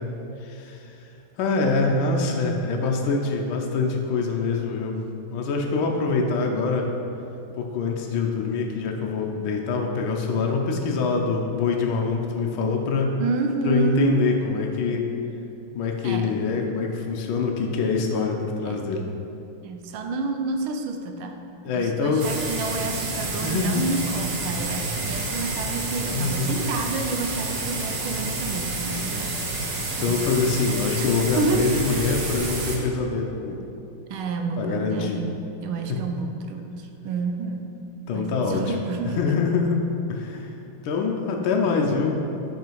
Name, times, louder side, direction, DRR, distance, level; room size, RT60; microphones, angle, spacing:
voice 1, 0.4-0.9 1.4-5.0 5.3-6.9 7.6-13.2 13.6-15.0 15.7-19.1 21.6-22.3 23.4-23.9 26.0-26.7 29.7-33.6 34.6-35.2 35.9-36.0 38.1-38.8 39.2-42.2, left 4 dB, 75° left, 1 dB, 1.5 m, -25 dB
voice 2, 13.2-14.3 16.0-16.3 18.6-18.9 19.6-21.4 21.7-29.4 30.0-30.4 31.0-31.1 31.4-31.8 34.1-37.8 38.1-39.2, right 3 dB, 75° right, 5 dB, 1.4 m, -29 dB
sound 1, 22.2-32.8, right 2 dB, 60° right, 1.5 m, -29 dB
8.0 x 5.0 x 4.6 m, 2.7 s
omnidirectional pair, 2.4 m